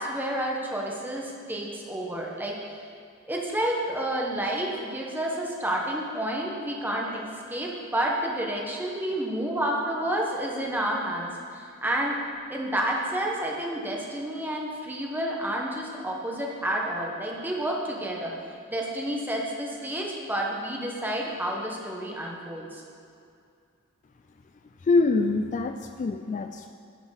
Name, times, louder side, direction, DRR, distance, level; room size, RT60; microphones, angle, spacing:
voice 1, 0.0-2.6 3.3-12.2 12.5-18.3 18.7-22.8, right 1 dB, 10° right, -2 dB, 1.2 m, -30 dB
voice 2, 24.8-26.7, left 3 dB, 35° left, 7 dB, 0.3 m, -25 dB
10.5 x 5.8 x 5.8 m, 2.5 s
head